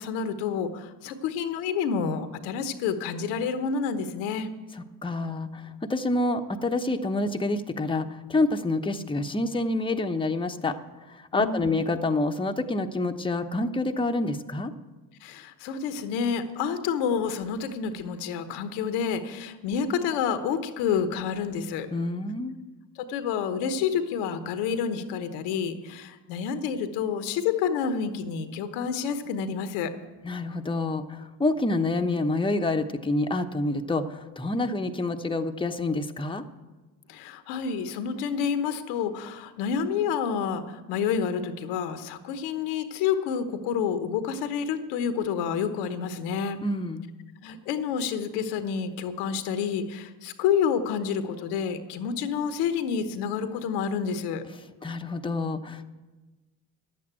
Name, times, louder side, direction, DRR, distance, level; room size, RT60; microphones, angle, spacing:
voice 1, 0.0-4.5 11.3-11.8 15.2-21.9 23.0-29.9 37.1-46.6 47.4-54.4, left 7 dB, 75° left, 10 dB, 1.1 m, -29 dB
voice 2, 5.0-10.8 11.1-14.7 21.9-22.5 30.2-36.4 46.6-47.1 54.8-55.8, left 2 dB, 10° left, 6 dB, 0.9 m, -27 dB
11.0 x 8.5 x 8.9 m, 1.2 s
hypercardioid pair, 55°, 44 cm